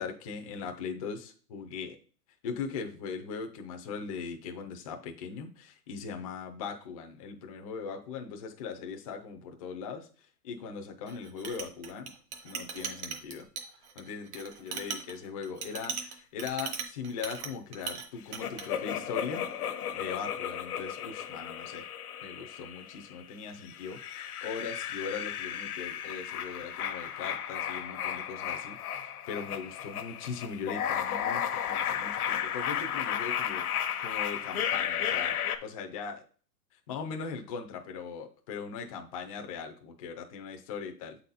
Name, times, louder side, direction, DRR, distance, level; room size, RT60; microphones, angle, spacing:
voice 1, 0.0-2.0 2.4-10.1 10.4-12.1 12.4-13.5 14.0-19.5 19.9-21.9 22.2-28.8 29.3-33.7 34.0-36.2 36.9-41.2, left 5 dB, 25° left, 4 dB, 0.5 m, -39 dB
Chink clink, 11.1-18.1 18.3-18.7, right 6 dB, 50° right, 1.2 m, -39 dB
sound 1, 18.4-23.1 23.7-35.6, left 9 dB, 75° left, 1.0 m, -34 dB
7.6 x 4.1 x 4.0 m, 0.41 s
hypercardioid pair, 160°, 45 cm